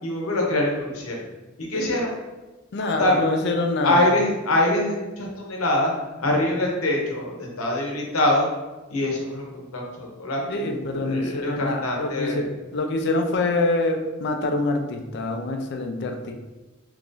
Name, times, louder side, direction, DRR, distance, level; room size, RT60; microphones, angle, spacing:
voice 1, 0.0-1.2 1.6-2.1 2.7-3.6 3.8-5.9 6.2-8.5 8.9-12.4, left 1 dB, 85° left, -1 dB, 0.8 m, -24 dB
voice 2, 2.7-4.1 10.5-16.4, left 2 dB, 55° left, 5 dB, 0.4 m, -25 dB
2.9 x 2.5 x 3.7 m, 1.1 s
head